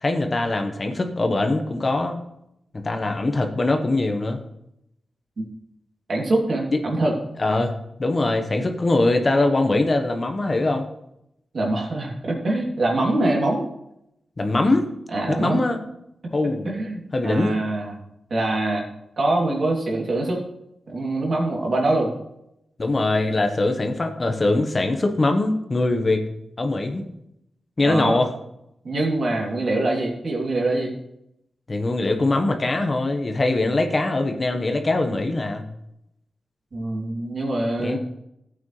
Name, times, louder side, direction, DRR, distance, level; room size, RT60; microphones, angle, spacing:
voice 1, 0.0-2.2 2.7-4.4 6.7-6.8 7.4-10.8 14.4-14.9 15.3-15.8 16.3-16.7 17.1-17.7 22.8-26.2 26.6-27.1 27.8-28.3 31.7-35.6 37.8-38.0, left 2 dB, 40° left, 5 dB, 1.3 m, -22 dB
voice 2, 6.1-7.1 11.5-13.6 15.1-15.6 16.6-17.9 18.3-18.8 19.2-20.4 20.9-22.1 27.8-28.2 28.8-30.9 36.7-38.0, right 2 dB, 60° right, -1 dB, 3.0 m, -24 dB
14.0 x 8.4 x 3.3 m, 0.81 s
cardioid pair, 65°, 0 cm